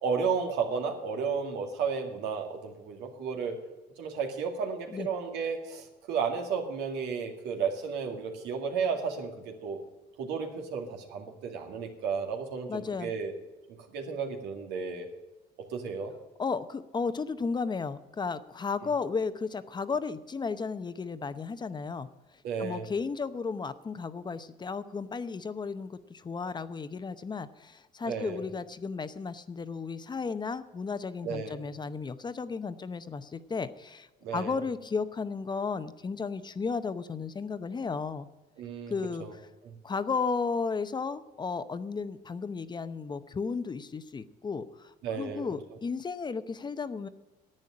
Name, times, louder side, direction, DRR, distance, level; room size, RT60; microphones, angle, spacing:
voice 1, 0.0-3.6 4.0-9.8 10.2-13.3 13.9-15.1 15.7-16.1 22.4-22.8 28.1-28.4 31.2-31.6 34.2-34.5 38.6-38.9 39.2-39.3 39.6-39.7 45.0-45.4, right 5 dB, 90° right, 3 dB, 2.2 m, -33 dB
voice 2, 12.7-13.1 16.4-22.1 22.6-38.3 38.9-39.5 39.8-47.1, left 5 dB, 25° left, 12 dB, 0.7 m, -34 dB
10.5 x 9.0 x 8.8 m, 1.1 s
cardioid pair, 110°, 17 cm